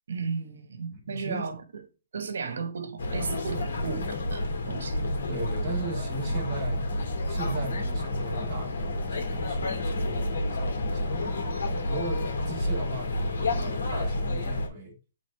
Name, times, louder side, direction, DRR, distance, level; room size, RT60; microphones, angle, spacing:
voice 1, 0.1-1.6 2.1-5.1, right 5 dB, 80° right, 1.2 m, -34 dB
voice 2, 0.9-1.5 2.4-2.5 4.9-6.9 7.3-14.9, right 1 dB, 20° right, 1.5 m, -38 dB
sound 1, 3.0-14.7, left 1 dB, 85° left, 2.0 m, -30 dB
8.3 x 3.8 x 3.3 m
hypercardioid pair, 165°, 0 cm